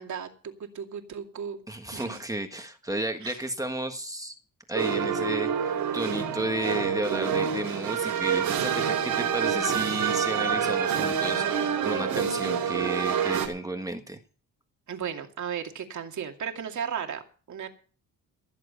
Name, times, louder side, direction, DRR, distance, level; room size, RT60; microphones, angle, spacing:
voice 1, 0.0-1.6 1.9-2.2 3.2-3.4 14.9-17.2 17.5-17.7, right 7 dB, 55° right, 4 dB, 2.5 m, -35 dB
voice 2, 1.7-4.3 4.7-14.2, right 1 dB, 10° right, 5 dB, 1.6 m, -33 dB
sound 1, 4.7-13.5, right 7 dB, 75° right, 4.2 m, -27 dB
16.5 x 7.6 x 6.8 m, 0.39 s
cardioid pair, 115°, 34 cm